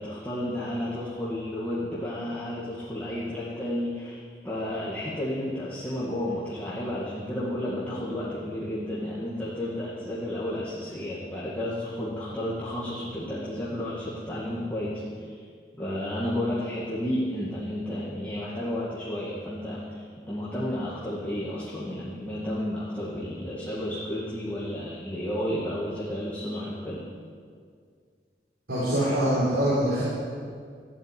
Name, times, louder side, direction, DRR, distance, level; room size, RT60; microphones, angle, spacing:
voice 1, 0.0-15.4 15.8-27.0, left 1 dB, 10° left, -9 dB, 2.2 m, -32 dB
voice 2, 28.7-30.0, equal, 85° right, -9 dB, 4.7 m, -24 dB
14.5 x 8.6 x 10.0 m, 2.1 s
head